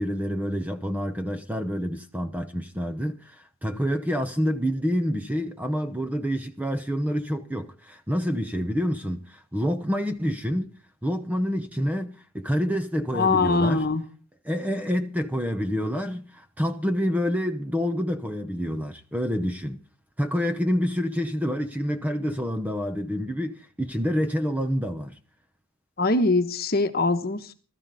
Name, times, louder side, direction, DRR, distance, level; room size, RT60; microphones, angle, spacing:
voice 1, 0.0-10.7 11.0-13.8 14.4-19.8 20.2-25.2, equal, 5° right, 0.9 m, -27 dB
voice 2, 13.1-14.0 26.0-27.5, left 3 dB, 45° left, 1.3 m, -22 dB
19.0 x 13.0 x 4.2 m
head